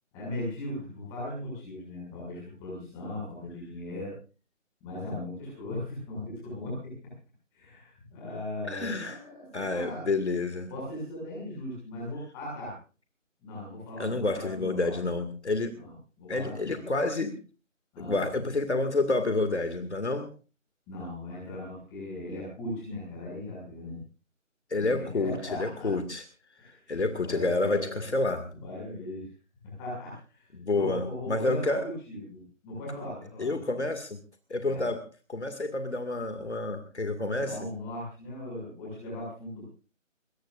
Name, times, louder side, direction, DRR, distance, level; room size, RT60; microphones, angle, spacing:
voice 1, 0.1-4.1 4.8-6.9 7.5-10.0 10.7-12.7 13.4-14.9 15.7-17.0 17.9-18.2 20.9-24.0 24.8-25.9 26.6-26.8 27.2-28.1 28.6-29.3 29.8-30.4 30.7-33.8 34.6-34.8 37.4-39.7, left 1 dB, 5° left, -5 dB, 6.5 m, -38 dB
voice 2, 8.7-9.2 9.5-10.7 14.0-15.8 16.3-17.4 18.0-20.3 24.7-26.2 26.6-28.5 30.5-31.9 33.4-34.2 34.5-35.0 35.3-37.6, left 2 dB, 55° left, 8 dB, 2.4 m, -29 dB
22.5 x 21.5 x 2.6 m, 0.36 s
figure-of-eight pair, 175°, 39 cm